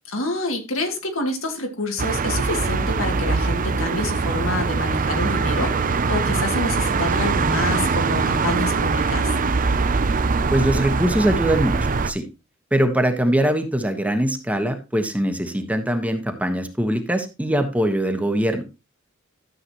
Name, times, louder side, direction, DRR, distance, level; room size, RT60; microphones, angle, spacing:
voice 1, 0.0-9.3, left 2 dB, 75° left, 2.7 m, -27 dB
sound 1, 2.0-12.1, right 4 dB, 40° right, 0.6 m, -22 dB
voice 2, 10.5-11.8 12.0-12.2 12.7-18.6, right 1 dB, 5° right, 1.2 m, -22 dB
13.0 x 7.8 x 3.0 m
head